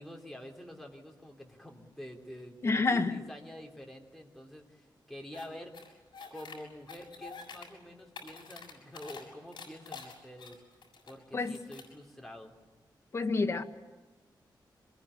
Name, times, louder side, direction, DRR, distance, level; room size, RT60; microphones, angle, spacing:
voice 1, 0.0-6.0 6.3-10.6 11.0-12.5, equal, ahead, 1 dB, 3.3 m, -47 dB
voice 2, 2.6-3.2 11.3-11.6 13.1-13.6, left 3 dB, 35° left, 5 dB, 1.5 m, -28 dB
sound 1, 5.3-5.5 5.7-6.6 6.9-7.7 8.0-9.2 9.5-11.1 11.4-11.9, left 5 dB, 70° left, 7.0 m, -47 dB
24.5 x 21.5 x 9.9 m, 1.1 s
wide cardioid pair, 170°, 8 cm